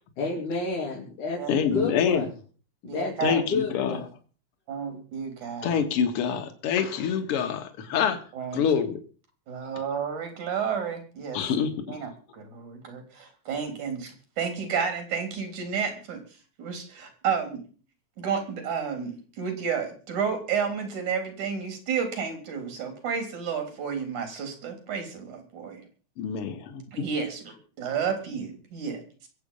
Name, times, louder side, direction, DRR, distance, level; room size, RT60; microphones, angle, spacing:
voice 1, 0.2-2.3 2.8-4.0, left 4 dB, 85° left, 4.3 m, -30 dB
voice 2, 1.5-2.3 3.2-4.0 5.6-8.2 8.5-9.0 11.3-12.0 26.2-26.8, left 7 dB, 55° left, 2.5 m, -26 dB
voice 3, 2.8-3.4 4.7-5.8 8.3-8.6 9.5-11.4 11.9-16.2 16.6-17.6 18.2-25.9 26.9-29.3, right 6 dB, 80° right, 4.9 m, -31 dB
23.0 x 8.3 x 5.6 m
omnidirectional pair, 3.4 m